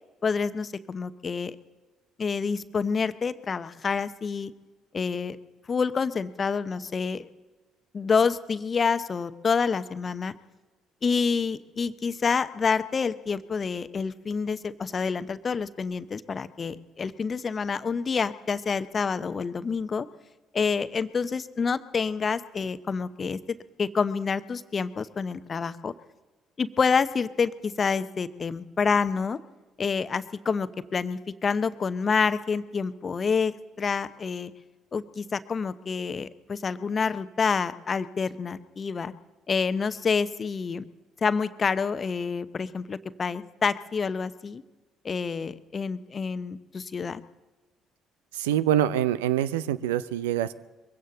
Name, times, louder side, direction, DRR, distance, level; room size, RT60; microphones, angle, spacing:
voice 1, 0.2-1.6 2.2-4.5 4.9-5.4 5.7-7.3 7.9-10.3 11.0-20.1 20.5-25.9 26.6-29.4 29.8-34.5 34.9-39.1 39.5-40.8 41.2-44.6 45.0-47.2, left 5 dB, 40° left, 13 dB, 0.8 m, -28 dB
voice 2, 48.3-50.5, right 11 dB, 80° right, 16 dB, 0.5 m, -25 dB
22.5 x 16.0 x 3.9 m, 1.2 s
hypercardioid pair, 50°, 0 cm